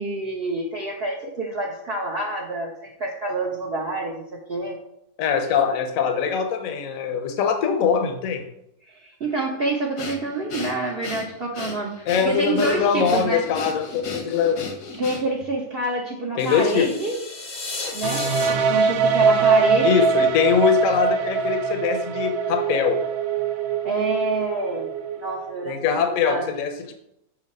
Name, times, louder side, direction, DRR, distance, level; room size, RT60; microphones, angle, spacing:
voice 1, 0.0-4.8 8.9-13.4 15.0-17.2 17.9-20.1 23.8-24.9 25.2-26.4, right 2 dB, 50° right, -2 dB, 0.9 m, -27 dB
voice 2, 5.2-8.4 12.1-14.7 16.4-16.9 19.8-23.0 25.6-26.9, left 7 dB, 65° left, 6 dB, 1.1 m, -22 dB
Breathing, 10.0-15.5, left 3 dB, 85° left, 1.5 m, -35 dB
sound 1, 16.4-20.5, left 3 dB, 40° left, 0.7 m, -35 dB
sound 2, 18.0-25.8, right 5 dB, 75° right, 0.6 m, -22 dB
7.1 x 2.8 x 5.3 m, 0.79 s
omnidirectional pair, 1.6 m